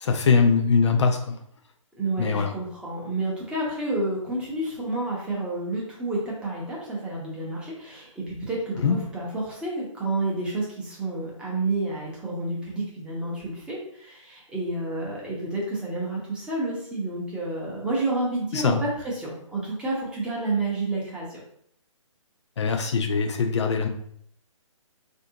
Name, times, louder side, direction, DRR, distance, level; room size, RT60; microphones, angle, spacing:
voice 1, 0.0-1.2 2.2-2.5 8.8-8.9 18.5-18.8 22.6-23.9, left 5 dB, 55° left, 5 dB, 0.5 m, -21 dB
voice 2, 2.0-21.4, right 2 dB, 5° right, -5 dB, 0.7 m, -30 dB
3.3 x 2.6 x 2.7 m, 0.66 s
figure-of-eight pair, 140°, 17 cm